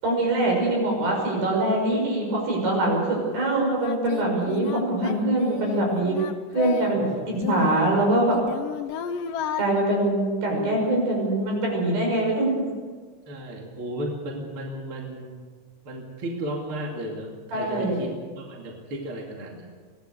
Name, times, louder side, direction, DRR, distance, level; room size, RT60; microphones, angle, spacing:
voice 1, 0.0-6.2 6.5-8.4 9.6-12.7 17.5-18.0, right 1 dB, 55° right, 0 dB, 7.7 m, -23 dB
Singing, 3.2-3.3 3.8-7.0 7.3-9.6, left 8 dB, 75° left, 1.9 m, -33 dB
voice 2, 13.3-15.4 15.8-19.7, right 1 dB, 35° right, 0 dB, 2.6 m, -34 dB
23.5 x 17.5 x 6.8 m, 1.5 s
omnidirectional pair, 5.2 m